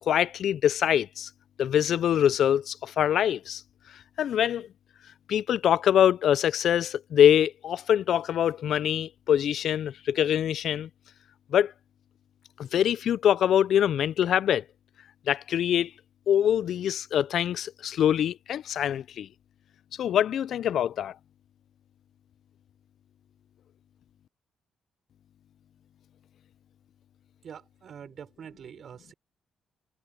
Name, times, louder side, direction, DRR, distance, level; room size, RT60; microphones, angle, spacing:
voice 1, 0.1-1.3 1.6-3.6 4.2-4.7 5.3-10.9 11.5-11.7 12.6-14.6 15.3-15.9 16.3-19.3 20.0-21.1, left 10 dB, 70° left, 0.4 m, -24 dB
voice 2, 27.4-29.1, right 8 dB, 60° right, 6.0 m, -45 dB
cardioid pair, 90°, 0 cm